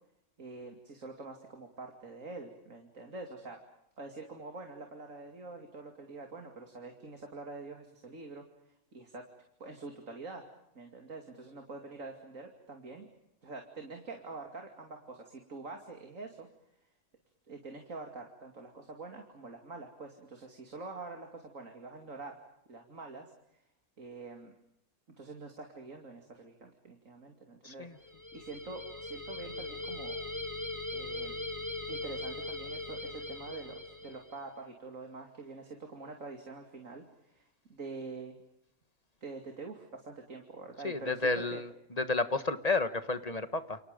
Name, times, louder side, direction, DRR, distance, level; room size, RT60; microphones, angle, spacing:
voice 1, 0.4-3.6 4.0-8.4 8.9-9.3 9.6-10.5 10.7-13.1 13.4-16.5 17.5-22.4 22.7-23.6 24.0-24.5 25.2-30.2 30.9-31.4 31.9-38.4 39.2-41.6, right 3 dB, 65° right, 3 dB, 3.1 m, -46 dB
voice 2, 27.6-27.9 40.8-41.7 42.0-43.8, left 3 dB, 30° left, 11 dB, 1.4 m, -31 dB
sound 1, 28.0-34.4, left 2 dB, 10° left, 3.2 m, -40 dB
29.5 x 29.0 x 5.2 m, 0.79 s
omnidirectional pair, 1.5 m